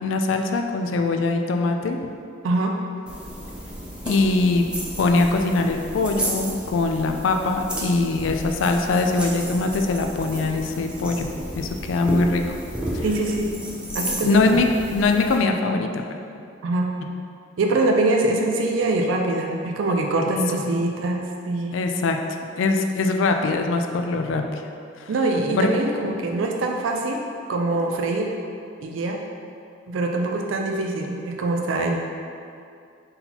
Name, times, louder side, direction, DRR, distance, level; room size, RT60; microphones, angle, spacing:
voice 1, 0.0-2.1 4.1-4.7 5.0-11.3 11.5-12.4 12.9-13.0 14.2-14.7 14.9-16.0 21.7-24.6 25.0-25.1 25.6-25.7, left 3 dB, 85° left, 4 dB, 0.3 m, -22 dB
voice 2, 2.4-2.8 13.0-13.6 13.9-14.6 16.6-16.9 17.6-21.8 25.1-27.2 27.5-28.3 28.8-29.2 29.9-32.0, right 2 dB, 90° right, 2 dB, 0.4 m, -23 dB
sound 1, 3.1-15.4, right 1 dB, 5° right, 0.5 m, -32 dB
4.0 x 3.9 x 2.8 m, 2.4 s
head